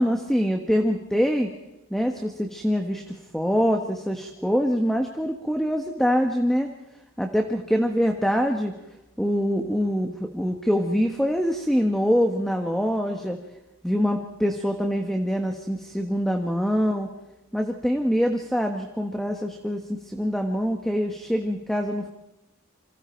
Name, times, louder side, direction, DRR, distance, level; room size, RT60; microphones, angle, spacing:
voice 1, 0.0-1.5 1.9-6.7 7.2-8.7 9.2-13.4 13.8-17.1 17.5-22.1, equal, ahead, 3 dB, 1.4 m, -24 dB
28.5 x 26.0 x 4.6 m, 0.98 s
head